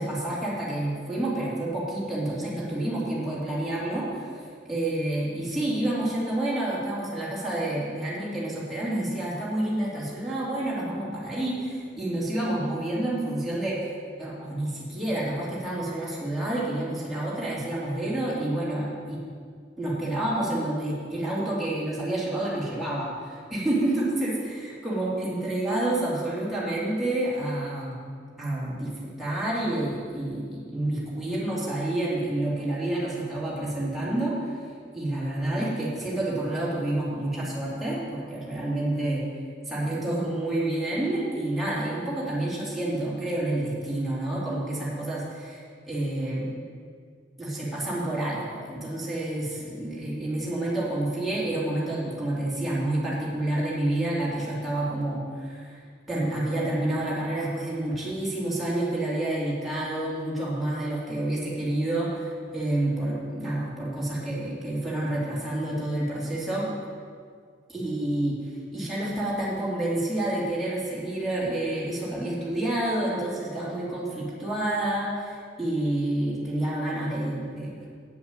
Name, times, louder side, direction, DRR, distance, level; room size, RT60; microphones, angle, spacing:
voice 1, 0.0-13.8 14.2-19.2 19.8-28.0 28.4-34.5 34.9-39.2 39.7-46.5 47.4-55.8 56.1-66.7 67.7-68.4 68.7-77.7, right 1 dB, ahead, -8 dB, 3.3 m, -29 dB
9.1 x 8.4 x 7.7 m, 2.1 s
head